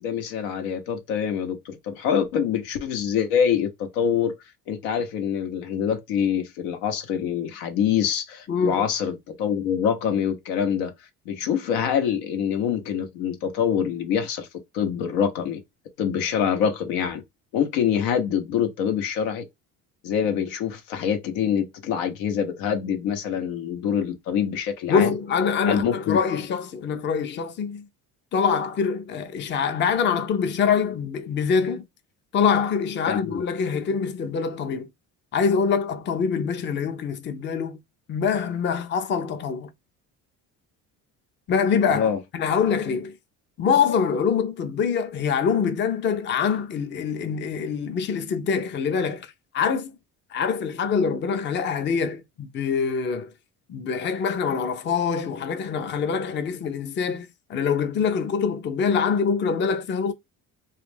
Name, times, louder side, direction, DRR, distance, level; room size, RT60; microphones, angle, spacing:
voice 1, 0.0-4.3 4.7-10.9 11.3-14.5 14.7-15.6 16.0-17.2 17.5-19.4 20.0-25.1 25.7-26.2 33.1-33.4 41.9-42.2, left 8 dB, 85° left, 0.8 m, -25 dB
voice 2, 8.5-8.8 24.9-27.8 28.3-31.8 32.3-34.9 35.3-37.8 38.1-39.7 41.5-42.1 42.3-43.1 43.6-49.3 49.5-49.9 50.3-53.3 53.7-60.1, left 6 dB, 35° left, 0.5 m, -24 dB
2.4 x 2.1 x 3.1 m
supercardioid pair, 95°, 35 cm